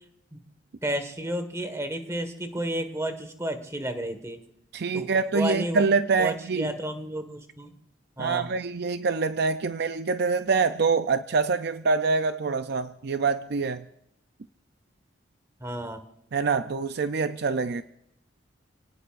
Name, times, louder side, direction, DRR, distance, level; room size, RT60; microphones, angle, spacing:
voice 1, 0.8-4.4 4.9-5.1 5.3-5.8 6.2-7.7 8.2-8.5 15.6-16.0, right 1 dB, 15° right, 1.6 m, -31 dB
voice 2, 4.7-6.7 8.2-13.8 16.3-17.8, right 4 dB, 60° right, 0.5 m, -25 dB
29.5 x 18.0 x 2.5 m
head